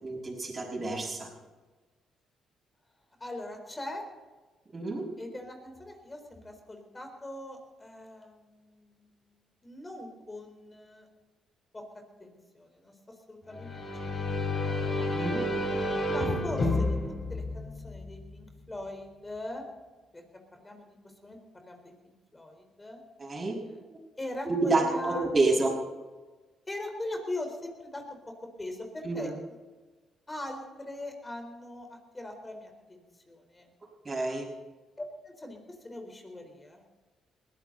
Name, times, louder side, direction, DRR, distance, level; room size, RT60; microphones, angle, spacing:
voice 1, 0.0-1.3 4.7-5.1 15.1-15.5 23.2-23.6 23.9-24.0 24.4-25.8 29.0-29.3 34.0-34.5, right 3 dB, 30° right, 1 dB, 5.7 m, -29 dB
voice 2, 3.2-4.0 5.2-11.1 11.7-11.8 12.2-12.9 13.3-14.7 16.0-17.0 17.3-19.7 20.1-20.2 20.5-23.0 23.6-23.8 24.2-25.3 26.7-28.0 28.6-29.3 30.3-33.7 35.0-35.6 35.8-36.8, left 1 dB, 20° left, 4 dB, 4.0 m, -41 dB
sound 1, 13.5-18.3, left 2 dB, 45° left, 5.3 m, -30 dB
21.0 x 16.0 x 4.0 m, 1.2 s
cardioid pair, 90°, 0 cm